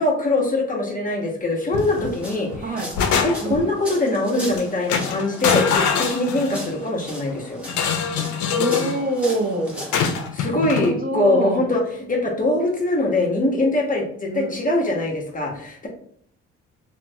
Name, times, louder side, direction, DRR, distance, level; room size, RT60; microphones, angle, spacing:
voice 1, 0.0-2.7 3.2-7.6 10.3-11.8 12.1-15.9, left 2 dB, 25° left, -1 dB, 0.8 m, -22 dB
sound 1, 1.7-2.1 2.5-3.7 4.4-4.6 4.9-6.7 7.7-9.0 9.9-10.9, left 7 dB, 75° left, 0.5 m, -24 dB
sound 2, 1.8-10.2, equal, 5° right, 0.9 m, -37 dB
voice 2, 2.6-3.0 3.4-3.6 8.5-9.9 10.4-11.6 14.3-14.5, right 2 dB, 30° right, 1 dB, 0.6 m, -26 dB
2.9 x 2.1 x 2.6 m, 0.63 s
cardioid pair, 90°, 30 cm